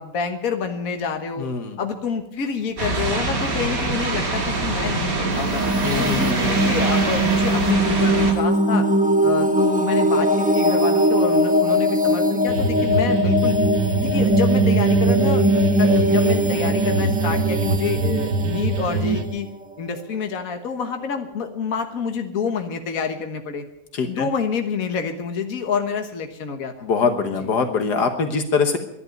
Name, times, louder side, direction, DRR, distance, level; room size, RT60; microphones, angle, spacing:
voice 1, 0.0-1.5 1.8-5.6 6.0-8.9 9.2-13.6 13.9-19.5 19.8-23.6 24.0-26.9 27.4-27.5, left 6 dB, 55° left, 6 dB, 1.7 m, -27 dB
voice 2, 1.4-1.8 5.8-6.8 23.9-24.3 26.8-28.8, left 5 dB, 75° left, 7 dB, 1.8 m, -23 dB
sound 1, 2.8-8.3, right 3 dB, 55° right, 2.8 m, -24 dB
sound 2, 5.3-20.0, right 1 dB, 5° right, 0.7 m, -21 dB
sound 3, 12.5-19.2, right 3 dB, 80° right, 1.9 m, -23 dB
12.0 x 11.0 x 9.1 m, 0.83 s
omnidirectional pair, 1.8 m